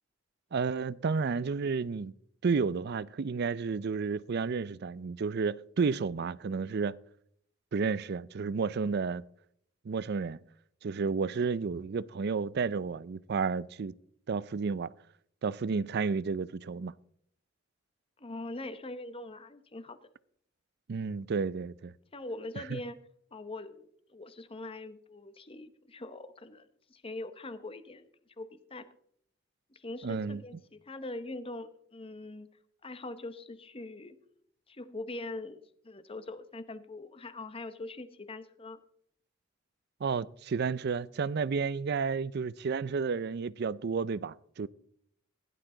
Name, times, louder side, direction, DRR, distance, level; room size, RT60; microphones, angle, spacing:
voice 1, 0.5-2.1 2.4-7.0 7.7-9.2 9.9-10.4 10.8-13.9 14.3-14.9 15.4-16.9 20.9-21.9 22.7-22.8 30.0-30.4 40.0-44.7, right 5 dB, 55° right, 0.4 m, -31 dB
voice 2, 18.2-20.0 22.1-23.0 23.3-28.1 28.4-28.9 29.7-32.5 32.8-34.2 34.7-38.8, left 2 dB, 30° left, 0.9 m, -42 dB
16.5 x 11.0 x 3.8 m
head